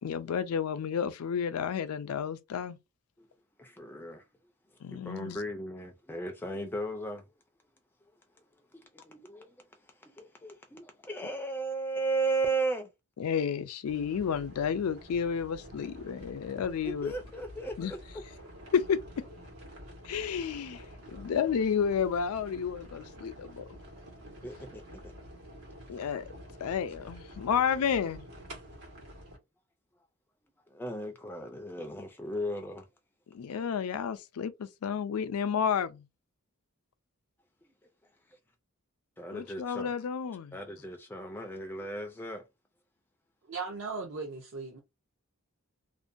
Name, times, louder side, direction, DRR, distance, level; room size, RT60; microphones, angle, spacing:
voice 1, 0.0-2.8 4.8-5.4 13.2-17.1 17.8-17.9 18.7-19.0 20.0-23.6 25.9-26.2 26.6-28.3 33.3-36.0 39.3-40.5, left 7 dB, 85° left, 0.4 m, -31 dB
voice 2, 3.6-4.2 4.9-7.3 8.7-12.9 16.8-18.0 21.1-21.2 24.4-25.1 30.7-32.9 39.2-39.9 40.5-42.4, right 2 dB, 10° left, 0.3 m, -36 dB
sound 1, 13.9-29.4, equal, 80° right, 1.2 m, -49 dB
voice 3, 43.5-44.8, right 4 dB, 60° right, 0.6 m, -37 dB
2.5 x 2.2 x 2.5 m
head